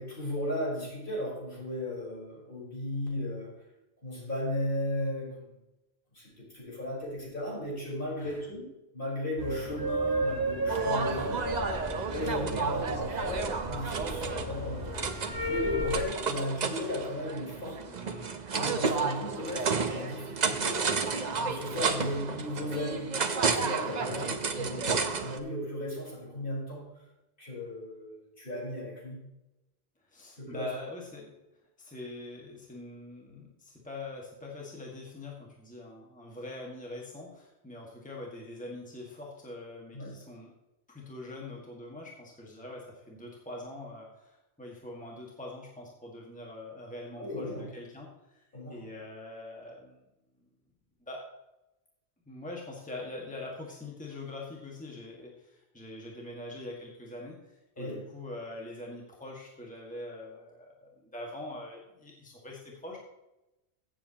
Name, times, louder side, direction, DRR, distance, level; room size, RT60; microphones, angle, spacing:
voice 1, 0.0-3.5 4.0-5.5 6.1-8.7 8.9-11.4 12.1-14.9 15.4-17.8 18.5-20.9 21.4-26.9 27.4-29.2 30.4-30.7 39.9-40.1 47.2-47.7 48.5-48.8 57.8-58.1, left 1 dB, 55° left, -5 dB, 4.6 m, -36 dB
sound 1, 9.4-16.0, right 1 dB, 20° right, 1.3 m, -33 dB
sound 2, 10.7-25.4, right 5 dB, 45° right, 0.9 m, -32 dB
voice 2, 17.9-18.4 23.9-24.3 30.0-31.4 31.8-40.5 40.9-50.0 51.0-51.3 52.3-63.0, left 2 dB, 5° left, -2 dB, 1.7 m, -43 dB
15.5 x 7.7 x 2.9 m, 0.96 s
omnidirectional pair, 1.1 m